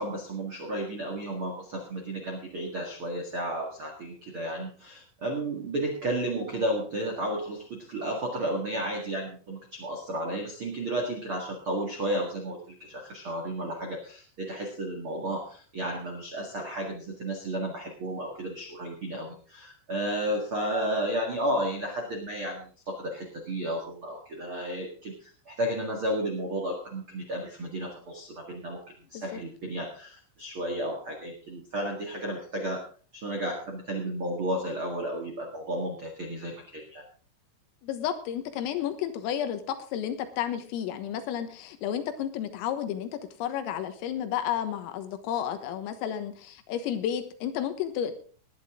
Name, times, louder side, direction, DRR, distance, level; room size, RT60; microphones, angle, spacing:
voice 1, 0.0-32.8 33.1-37.0, right 1 dB, 80° right, 1 dB, 1.1 m, -33 dB
voice 2, 37.8-43.1 43.4-48.2, left 10 dB, 90° left, 8 dB, 4.0 m, -32 dB
19.0 x 10.0 x 3.7 m, 0.42 s
omnidirectional pair, 5.8 m